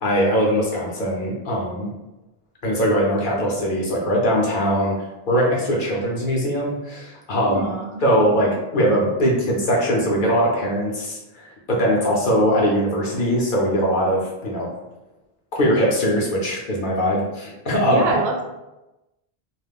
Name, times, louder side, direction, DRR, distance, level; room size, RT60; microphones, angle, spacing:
voice 1, 0.0-1.9 2.6-5.0 5.3-7.7 8.0-14.7 15.6-18.0, equal, 55° left, -3 dB, 0.8 m, -21 dB
voice 2, 7.4-8.1 17.8-18.4, right 3 dB, 80° right, 1 dB, 0.8 m, -25 dB
2.4 x 2.1 x 3.4 m, 0.99 s
omnidirectional pair, 1.0 m